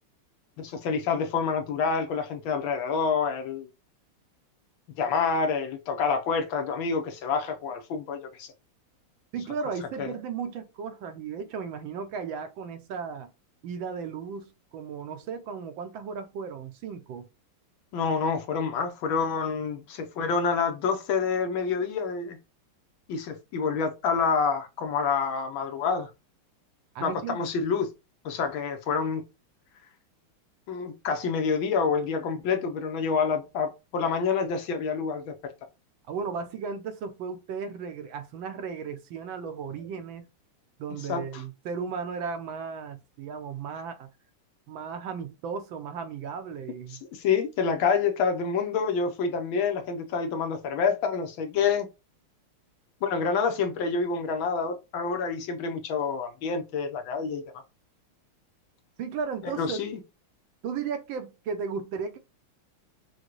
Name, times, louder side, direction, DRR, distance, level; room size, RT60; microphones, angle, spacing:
voice 1, 0.6-3.7 5.0-8.5 10.0-10.1 17.9-22.4 23.1-26.1 27.0-27.9 28.2-29.2 30.7-35.5 41.1-41.4 46.9-51.9 53.0-57.4 59.6-60.0, left 5 dB, 70° left, 1.4 m, -27 dB
voice 2, 9.3-13.3 13.6-17.3 26.9-27.5 36.1-40.3 40.8-44.1 44.7-47.0 59.0-59.8 60.6-62.2, right 6 dB, 75° right, 1.3 m, -35 dB
6.3 x 2.2 x 3.0 m
omnidirectional pair, 2.4 m